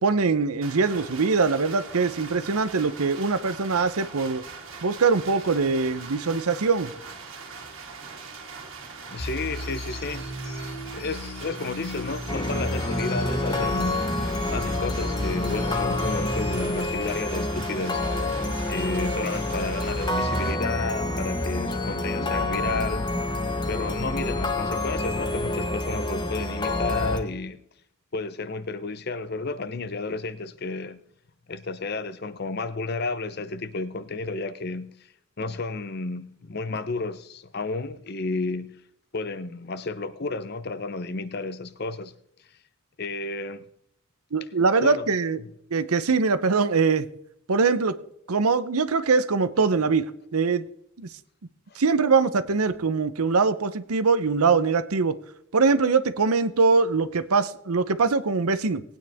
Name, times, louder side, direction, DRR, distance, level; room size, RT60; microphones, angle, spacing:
voice 1, 0.0-4.4 4.8-6.9 44.3-45.4 45.7-47.1 47.5-47.9 48.3-50.6 51.0-51.1 51.8-55.1 55.5-58.8, right 4 dB, 90° right, 0.8 m, -22 dB
sound 1, 0.6-20.5, right 4 dB, 65° right, 2.1 m, -41 dB
voice 2, 9.1-10.3 10.6-14.1 14.5-18.1 18.7-23.2 23.7-27.6 28.1-31.0 31.5-34.9 35.4-38.8 39.1-42.1 43.0-43.7 44.8-45.1 51.7-51.8, left 3 dB, 45° left, 0.7 m, -32 dB
sound 2, 9.2-16.6, equal, 80° left, 2.7 m, -34 dB
sound 3, 12.3-27.2, left 2 dB, 20° left, 1.0 m, -28 dB
19.0 x 9.2 x 3.5 m
head